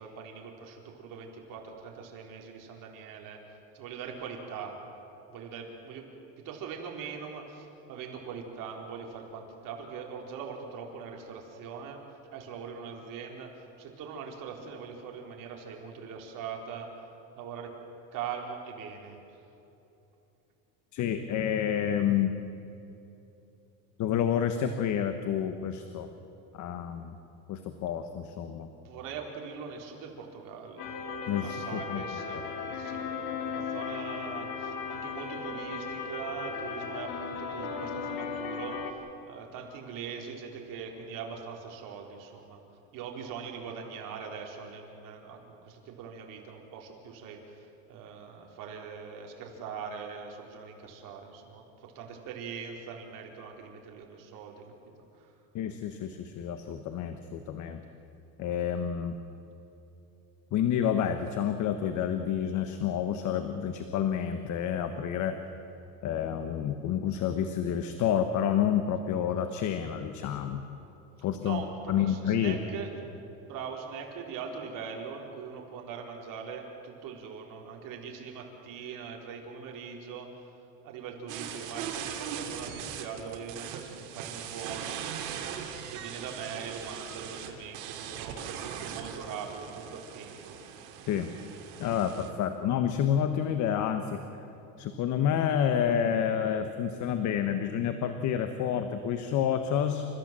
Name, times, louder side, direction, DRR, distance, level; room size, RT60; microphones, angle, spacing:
voice 1, 0.0-3.4 3.8-4.7 5.3-6.0 6.5-12.0 12.3-13.5 13.8-16.9 17.4-17.7 18.1-19.2 28.8-30.9 31.4-32.4 32.7-33.0 33.5-38.8 39.2-42.6 42.9-45.4 45.7-47.4 47.9-51.6 52.0-54.6 71.4-71.7 71.9-72.9 73.5-80.3 80.8-85.0 85.9-90.6, right 6 dB, 55° right, 1 dB, 4.1 m, -41 dB
voice 2, 20.9-22.3 24.0-26.1 26.5-27.1 27.5-28.7 31.3-32.5 55.5-57.8 58.4-59.2 60.5-65.4 66.0-70.6 71.2-72.6 91.1-91.3 91.8-94.2 94.8-100.0, left 9 dB, 45° left, 8 dB, 1.3 m, -29 dB
sound 1, 30.8-38.9, left 5 dB, 65° left, 2.9 m, -36 dB
sound 2, 81.3-92.3, right 9 dB, 80° right, 3.0 m, -40 dB
29.5 x 15.0 x 7.7 m, 2.9 s
cardioid pair, 135°, 39 cm